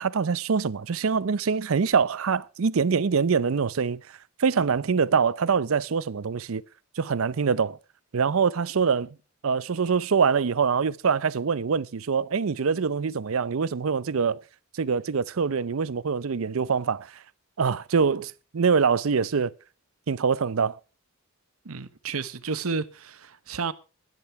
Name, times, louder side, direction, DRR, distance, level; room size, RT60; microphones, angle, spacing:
voice 1, 0.0-4.0 4.4-6.6 7.0-7.8 8.1-9.1 9.4-14.4 14.7-17.1 17.6-19.5 20.1-20.8, right 5 dB, 70° right, 0.5 m, -24 dB
voice 2, 21.6-23.7, right 4 dB, 85° right, 1.0 m, -31 dB
14.0 x 10.5 x 4.6 m
head